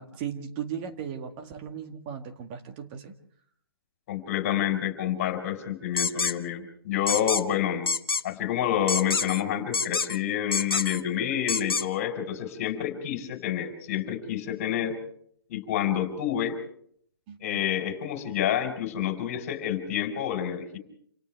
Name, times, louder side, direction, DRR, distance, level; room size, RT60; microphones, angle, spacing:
voice 1, 0.0-3.1 17.3-17.6, right 8 dB, 25° right, 5 dB, 1.9 m, -37 dB
voice 2, 4.1-7.9 8.2-15.0 15.5-16.6 17.4-20.8, left 10 dB, 30° left, 5 dB, 4.7 m, -28 dB
sound 1, 6.0-6.3 7.1-7.4 7.9-8.2 8.9-9.4 9.7-10.2 10.5-11.0 11.5-11.8, left 4 dB, 70° left, 1.1 m, -27 dB
28.0 x 27.5 x 3.5 m, 0.65 s
figure-of-eight pair, 135°, 13 cm